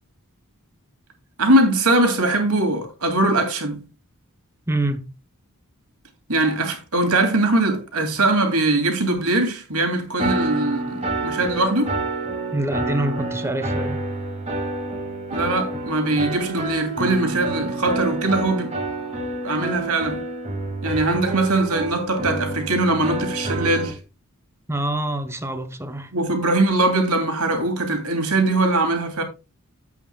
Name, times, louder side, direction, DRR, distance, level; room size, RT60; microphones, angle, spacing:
voice 1, 1.4-3.8 6.3-11.9 15.3-18.7 19.4-20.2 20.8-24.0 26.1-29.2, right 2 dB, 75° right, 2.7 m, -21 dB
voice 2, 4.7-5.1 12.5-14.0 24.7-26.1, right 1 dB, 10° right, 0.9 m, -26 dB
sound 1, 10.2-23.9, right 2 dB, 30° right, 2.1 m, -28 dB
12.5 x 8.4 x 2.3 m
head